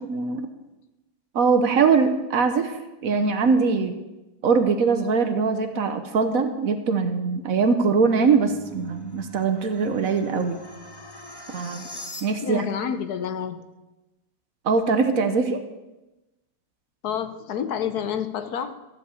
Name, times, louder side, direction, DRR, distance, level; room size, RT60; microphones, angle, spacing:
voice 1, 0.1-0.5 1.3-2.8 3.0-3.9 4.4-10.6 11.5-11.9 12.2-12.7 14.6-15.6, right 5 dB, 60° right, 8 dB, 1.2 m, -22 dB
sound 1, 7.7-12.7, left 2 dB, 15° left, 1.1 m, -43 dB
voice 2, 12.4-13.6 17.0-18.8, left 8 dB, 70° left, 10 dB, 1.3 m, -28 dB
14.0 x 5.3 x 8.3 m, 1.0 s
omnidirectional pair, 1.8 m